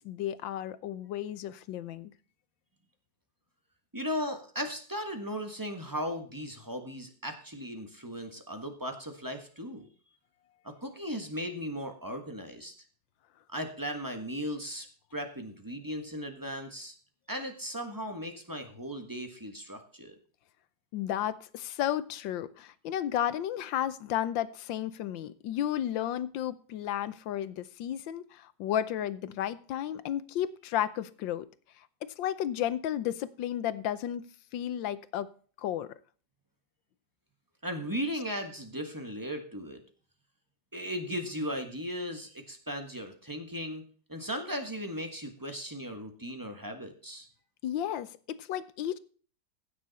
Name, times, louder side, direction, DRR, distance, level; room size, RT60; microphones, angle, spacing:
voice 1, 0.0-2.1 20.9-31.5 31.8-34.2 34.5-35.3 35.6-35.9 47.6-49.0, left 11 dB, 85° left, 1.5 m, -33 dB
voice 2, 3.9-9.9 10.6-12.7 13.5-14.9 15.1-16.9 17.3-20.1 37.6-39.8 40.7-43.8 44.1-47.3, equal, 10° right, 1.3 m, -37 dB
15.5 x 6.5 x 4.1 m
omnidirectional pair, 2.0 m